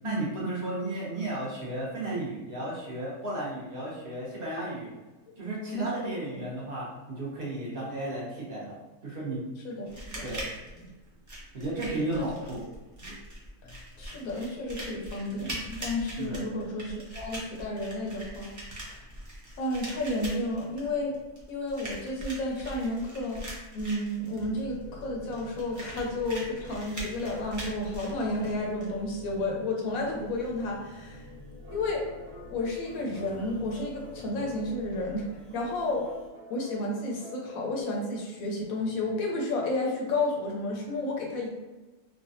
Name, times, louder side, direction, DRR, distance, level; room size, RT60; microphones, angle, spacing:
voice 1, 0.0-4.9 5.4-8.8 9.0-9.4 10.2-10.5 11.5-12.6 16.2-16.4, right 2 dB, 50° right, -6 dB, 0.8 m, -34 dB
voice 2, 5.7-6.4 9.6-10.3 10.8-10.9 12.2-12.3 13.0-13.1 13.6-18.5 18.8-19.0 19.6-21.1 21.5-31.2 31.7-32.1 32.5-35.3 35.5-36.1 36.5-41.5, left 2 dB, 90° left, 0 dB, 1.1 m, -32 dB
sound 1, 9.9-28.9, right 1 dB, 25° right, 0.4 m, -42 dB
sound 2, 24.3-36.3, left 2 dB, 70° left, 0.9 m, -47 dB
sound 3, 31.6-37.8, right 1 dB, 85° right, 1.1 m, -49 dB
3.2 x 2.2 x 2.6 m, 1.2 s
omnidirectional pair, 1.4 m